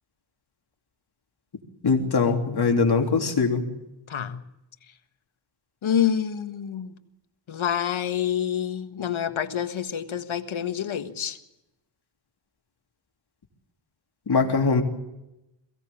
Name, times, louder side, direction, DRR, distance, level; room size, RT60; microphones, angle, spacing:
voice 1, 1.8-3.6 14.3-14.8, left 4 dB, 50° left, 3 dB, 3.3 m, -22 dB
voice 2, 4.1-4.4 5.8-6.9 7.5-11.4, left 9 dB, 75° left, 9 dB, 1.7 m, -27 dB
22.0 x 17.0 x 8.8 m, 0.93 s
wide cardioid pair, 120°, 48 cm